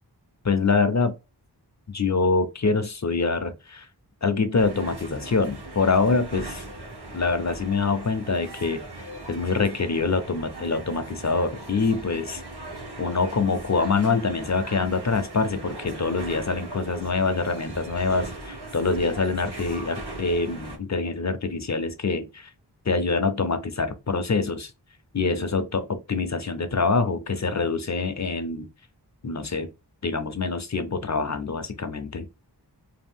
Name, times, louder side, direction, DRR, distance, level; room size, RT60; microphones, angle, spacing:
voice 1, 0.4-1.1 1.9-3.9 4.2-6.6 7.1-8.8 9.3-12.4 13.0-22.5 22.9-24.7 25.1-28.7 29.2-29.7 30.0-32.3, left 4 dB, 40° left, 0.5 m, -25 dB
sound 1, 4.5-20.8, right 2 dB, 65° right, 1.2 m, -39 dB
2.7 x 2.3 x 3.4 m
wide cardioid pair, 45°, 42 cm